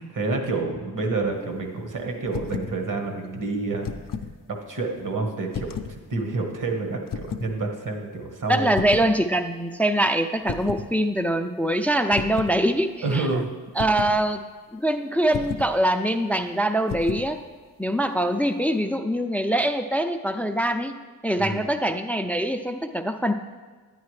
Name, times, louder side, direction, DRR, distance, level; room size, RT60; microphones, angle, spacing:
voice 1, 0.0-3.9 4.5-8.7 13.0-13.5 21.4-21.6, right 3 dB, 60° right, 3 dB, 1.4 m, -28 dB
sound 1, 2.3-2.8 3.6-4.4 5.5-6.0 7.1-7.5 8.8-9.1 10.5-10.9 12.1-12.6 13.8-14.2 15.3-15.7 16.9-17.3, left 6 dB, 65° left, 0.5 m, -32 dB
voice 2, 8.5-13.4 13.8-14.4 14.7-17.4 17.8-20.9 21.2-23.3, right 1 dB, 5° left, 7 dB, 0.4 m, -23 dB
10.0 x 9.4 x 3.2 m, 1.4 s
wide cardioid pair, 90°, 36 cm